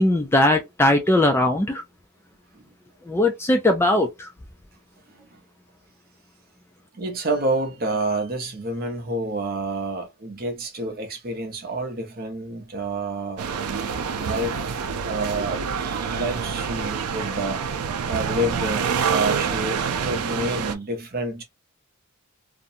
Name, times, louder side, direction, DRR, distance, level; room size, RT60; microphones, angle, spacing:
voice 1, 0.0-1.8 3.1-4.3, left 1 dB, 10° left, 0.3 m, -19 dB
voice 2, 6.9-13.5 14.1-14.8 15.0-17.6 18.0-21.4, right 2 dB, 45° right, 0.7 m, -28 dB
sound 1, 13.4-20.7, right 6 dB, 85° right, 0.4 m, -27 dB
2.5 x 2.2 x 2.7 m
head